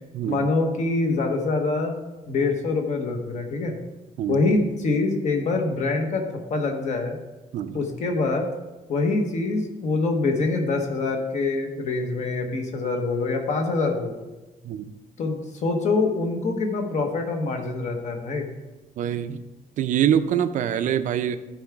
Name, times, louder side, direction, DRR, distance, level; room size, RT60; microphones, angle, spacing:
voice 1, 0.2-2.0 2.3-3.8 4.3-6.2 6.5-7.2 7.7-8.5 8.9-14.2 15.2-18.5, left 3 dB, 50° left, 3 dB, 1.1 m, -25 dB
voice 2, 19.0-19.4 19.8-21.4, right 9 dB, 55° right, 11 dB, 0.4 m, -24 dB
12.0 x 4.7 x 3.5 m, 1.1 s
cardioid pair, 170°, 15 cm